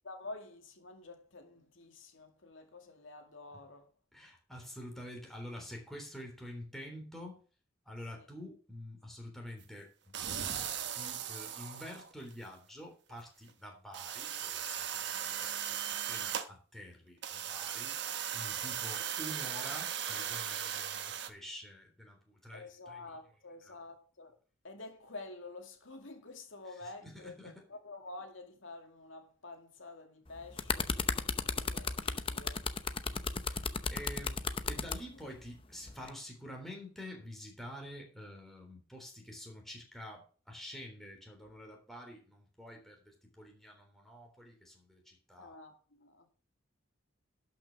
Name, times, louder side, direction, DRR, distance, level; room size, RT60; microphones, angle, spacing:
voice 1, 0.0-3.9 8.2-8.3 18.5-19.1 22.5-24.4 24.6-32.7 35.2-35.4 45.4-46.3, left 2 dB, 80° left, 2.2 m, -49 dB
voice 2, 4.1-7.4 7.9-10.6 10.9-18.0 18.3-23.0 23.6-23.8 27.0-27.6 33.0-33.6 33.9-45.6, equal, ahead, 3.5 m, -48 dB
sound 1, 10.1-12.3 13.1-13.2 13.5-13.6 13.9-16.5 17.2-21.3, right 9 dB, 60° right, 1.2 m, -38 dB
sound 2, 30.3-35.0 35.9-36.1, left 4 dB, 30° left, 0.7 m, -34 dB
12.0 x 6.1 x 6.0 m
head